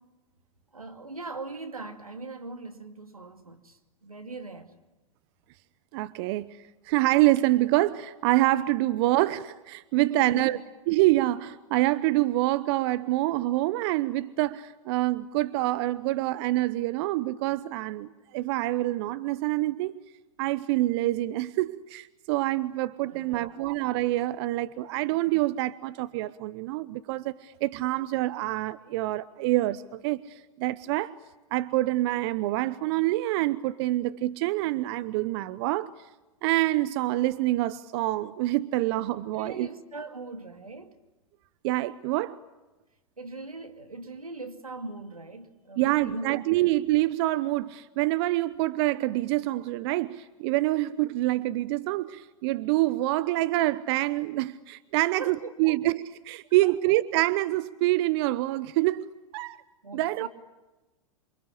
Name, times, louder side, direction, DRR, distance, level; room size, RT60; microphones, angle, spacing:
voice 1, 0.7-4.7 10.0-10.5 23.0-23.6 39.3-41.0 43.2-46.7 55.1-55.8 56.6-56.8 59.8-60.3, right 3 dB, 90° right, 2.5 m, -40 dB
voice 2, 5.9-6.6 6.8-10.6 10.9-20.0 20.4-31.1 31.5-35.9 36.4-39.7 41.6-42.4 45.8-59.6 59.9-60.3, right 17 dB, 50° right, 0.9 m, -26 dB
28.5 x 24.5 x 8.5 m
figure-of-eight pair, 100°, 18 cm